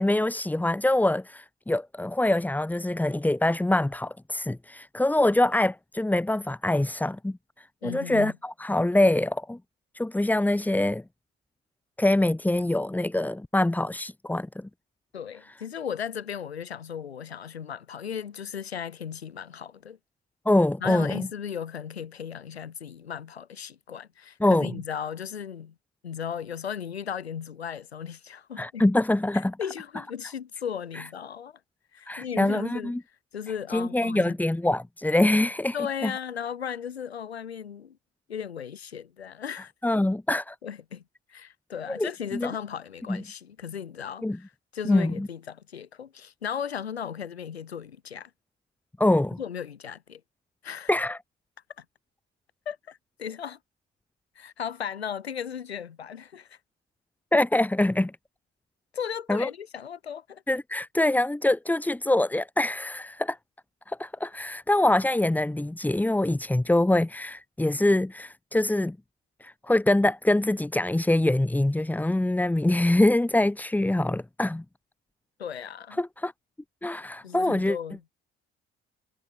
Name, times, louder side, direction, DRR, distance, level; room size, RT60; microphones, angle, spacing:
voice 1, 0.0-9.6 9.9-11.0 12.0-14.7 20.5-21.3 24.4-24.7 28.6-29.6 30.9-31.0 32.1-33.0 33.7-35.8 36.0-36.1 39.8-40.6 41.9-42.5 43.1-43.2 44.2-44.4 44.8-45.3 49.0-49.4 50.9-51.2 57.3-58.1 59.3-59.5 60.5-63.4 63.9-69.0 69.4-74.6 76.0-76.3 76.8-77.8, left 1 dB, 5° left, 0.7 m, -24 dB
voice 2, 7.8-8.3 15.1-20.0 20.8-25.7 26.0-28.9 29.3-31.6 31.9-32.9 33.3-34.3 35.7-38.0 38.3-39.7 40.6-41.0 41.3-48.3 49.4-50.2 50.6-50.9 51.8-51.9 52.6-53.6 54.4-56.6 58.9-60.4 75.4-76.0 77.2-78.0, left 8 dB, 90° left, 1.2 m, -36 dB
figure-of-eight pair, 45°, 31 cm